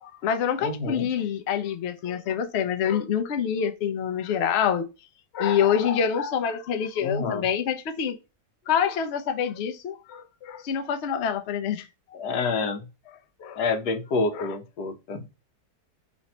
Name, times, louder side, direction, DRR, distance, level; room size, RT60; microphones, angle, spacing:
voice 1, 0.0-4.9 5.3-8.2 8.7-11.8 13.4-13.6 14.3-14.5, left 8 dB, 60° left, 0.7 m, -26 dB
voice 2, 0.6-1.1 7.0-7.5 12.1-12.9 13.6-15.3, left 3 dB, 90° left, 1.3 m, -28 dB
3.1 x 2.6 x 4.1 m
omnidirectional pair, 1.6 m